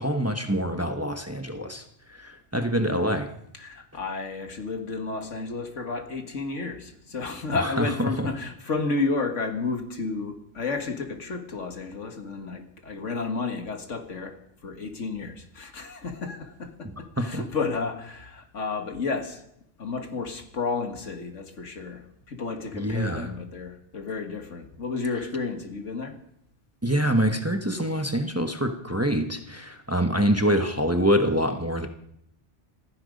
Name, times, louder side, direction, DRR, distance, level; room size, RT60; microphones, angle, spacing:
voice 1, 0.0-3.3 7.6-8.3 17.2-17.4 22.7-23.3 26.8-31.9, equal, 15° right, 6 dB, 1.0 m, -25 dB
voice 2, 3.5-14.4 14.6-19.4 19.8-26.1 30.8-31.0, left 4 dB, 85° left, 5 dB, 2.2 m, -32 dB
27.0 x 10.5 x 5.2 m, 0.76 s
omnidirectional pair, 1.2 m